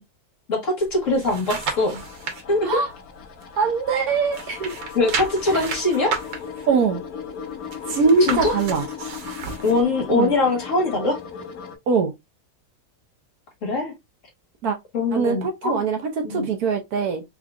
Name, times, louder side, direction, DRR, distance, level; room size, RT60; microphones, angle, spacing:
voice 1, 0.5-2.0 2.5-2.7 4.9-6.2 8.2-8.5 9.6-11.2 13.6-13.9 14.9-15.8 16.2-16.5, left 2 dB, 50° left, 1.5 m, -22 dB
sound 1, 0.8-2.4 2.9-4.0 4.3-9.8 10.3-10.4, right 5 dB, 90° right, 1.6 m, -32 dB
sound 2, 1.6-11.8, left 7 dB, 65° left, 1.1 m, -37 dB
voice 2, 3.6-4.8 6.7-7.0 7.8-8.8 10.1-10.3 11.9-12.1 14.6-14.8 15.1-17.2, right 5 dB, 65° right, 1.1 m, -22 dB
3.6 x 3.6 x 2.3 m
omnidirectional pair, 1.9 m